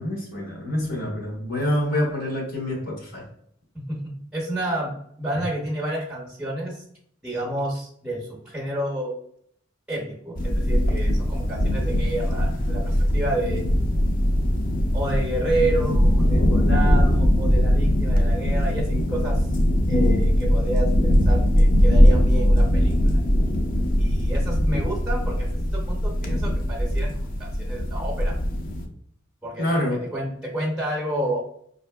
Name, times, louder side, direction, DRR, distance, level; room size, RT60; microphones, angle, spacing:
voice 1, 0.0-3.2 24.7-24.8 29.6-30.0, left 1 dB, 80° left, -3 dB, 1.1 m, -26 dB
voice 2, 3.7-4.9 5.2-6.8 7.2-9.1 9.9-13.7 14.9-19.4 19.9-22.9 24.0-25.5 25.7-27.1 27.4-28.4 29.4-31.4, right 1 dB, 5° right, -3 dB, 0.6 m, -30 dB
sound 1, 10.4-28.9, equal, 45° left, 0.5 m, -20 dB
5.0 x 2.6 x 2.2 m, 0.68 s
head